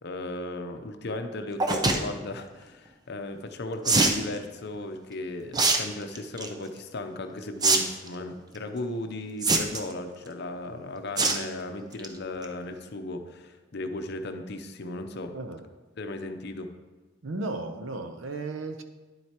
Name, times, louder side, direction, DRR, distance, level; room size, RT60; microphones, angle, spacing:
voice 1, 0.0-15.3 16.0-16.7, left 2 dB, 60° left, 7 dB, 0.7 m, -36 dB
sound 1, 1.6-2.0 3.9-4.2 5.5-5.8 6.2-6.5 7.6-7.8 8.1-8.2 9.4-9.9 11.2-11.4 11.8-12.1 12.4-12.5 12.7-12.8, right 3 dB, 20° right, 0.6 m, -22 dB
voice 2, 17.2-18.8, right 2 dB, 80° right, 7 dB, 0.7 m, -34 dB
10.0 x 7.8 x 2.9 m, 1.2 s
head